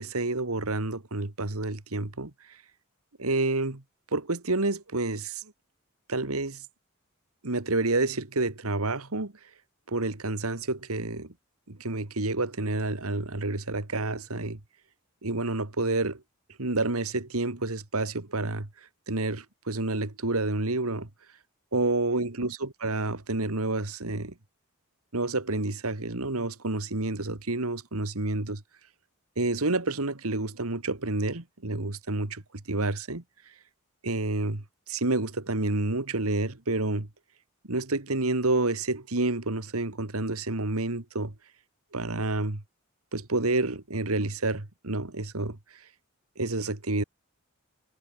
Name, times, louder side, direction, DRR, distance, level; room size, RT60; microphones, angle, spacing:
voice 1, 0.0-2.3 3.2-3.8 4.1-5.4 6.1-6.6 7.4-9.3 9.9-11.3 11.7-14.6 15.2-16.2 16.6-18.7 19.1-21.1 21.7-24.3 25.1-28.6 29.4-32.4 32.7-33.2 34.0-37.1 37.7-41.3 41.9-42.6 43.1-45.6 46.4-47.0, right 2 dB, 80° right, 2.1 m, -29 dB
head